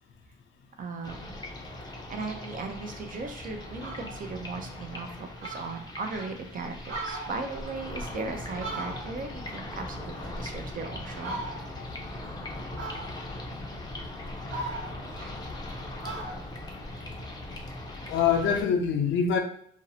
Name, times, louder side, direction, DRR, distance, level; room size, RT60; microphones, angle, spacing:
voice 1, 0.8-1.4 2.1-11.4, right 3 dB, 45° right, 5 dB, 0.5 m, -37 dB
sound 1, 1.0-18.6, left 1 dB, 20° left, 0.5 m, -40 dB
Fowl, 3.2-3.3 3.6-4.2 4.7-4.8 5.1-5.2 5.4-6.3 6.7-9.4 9.7-10.7 11.2-11.9 12.8-13.4 14.0-15.7 16.0-17.6, right 2 dB, 90° right, 0.8 m, -39 dB
voice 2, 18.1-19.4, left 7 dB, 75° left, 4 dB, 0.5 m, -25 dB
2.6 x 2.0 x 2.7 m, 0.64 s
cardioid pair, 90°, 20 cm